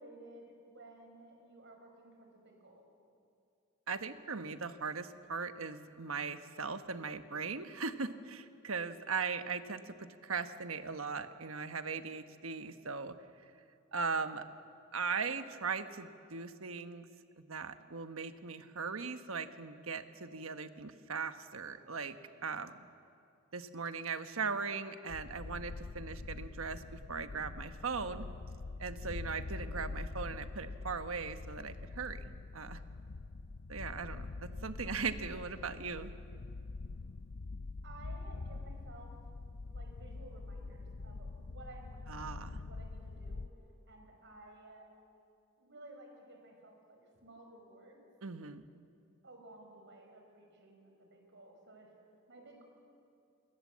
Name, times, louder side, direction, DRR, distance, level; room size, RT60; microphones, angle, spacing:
voice 1, 0.0-2.8 37.8-39.1 39.6-43.4 43.9-44.9 45.6-48.0 49.2-51.9 52.3-52.6, right 2 dB, 60° right, 2 dB, 5.5 m, -55 dB
voice 2, 3.9-13.1 13.9-14.4 14.9-17.1 17.4-22.2 22.4-22.8 23.5-28.3 28.8-32.8 33.7-36.1 42.1-42.6 48.2-48.7, right 5 dB, 90° right, 9 dB, 1.2 m, -39 dB
sound 1, 25.1-43.5, left 3 dB, 55° left, 0.6 m, -44 dB
28.0 x 21.5 x 7.5 m, 2.4 s
head